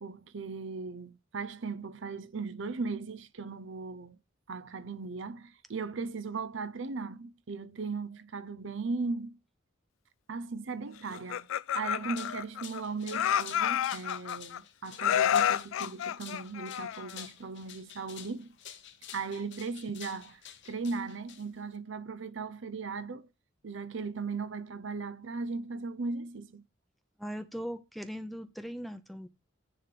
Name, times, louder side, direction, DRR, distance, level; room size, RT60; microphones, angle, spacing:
voice 1, 0.0-4.2 4.5-9.4 10.3-11.5 11.7-18.6 19.1-20.4 20.7-23.3 23.6-26.6, right 4 dB, 65° right, 0.6 m, -37 dB
Laughter, 11.1-12.8 13.1-14.6 15.0-17.3, left 9 dB, 75° left, 0.3 m, -29 dB
sound 1, 11.9-21.8, left 10 dB, 60° left, 0.9 m, -49 dB
voice 2, 27.2-29.3, equal, ahead, 0.6 m, -39 dB
10.0 x 3.4 x 5.8 m
head